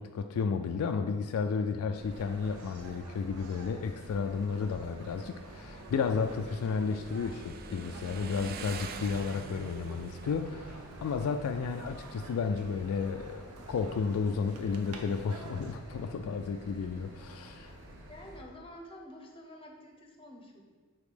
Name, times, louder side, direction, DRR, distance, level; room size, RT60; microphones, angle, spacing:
voice 1, 0.0-17.8, left 5 dB, 70° left, 6 dB, 0.3 m, -32 dB
sound 1, 1.9-18.4, right 1 dB, 60° right, 1.0 m, -50 dB
sound 2, 2.1-15.8, right 3 dB, 75° right, 0.7 m, -51 dB
Motorcycle, 5.0-13.2, right 5 dB, 45° right, 0.3 m, -47 dB
voice 2, 18.1-20.6, left 1 dB, 25° left, 2 dB, 0.7 m, -49 dB
5.2 x 3.7 x 5.0 m, 1.4 s
head